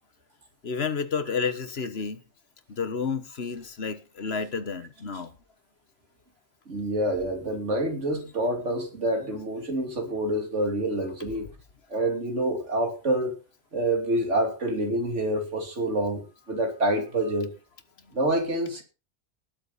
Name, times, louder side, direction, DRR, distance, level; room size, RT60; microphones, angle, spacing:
voice 1, 0.6-2.2 2.7-5.3, left 5 dB, 50° left, 1.4 m, -30 dB
voice 2, 6.7-11.5 11.9-13.4 13.7-17.5 18.1-18.8, right 1 dB, 60° right, 3.2 m, -27 dB
19.5 x 7.9 x 4.1 m
omnidirectional pair, 1.4 m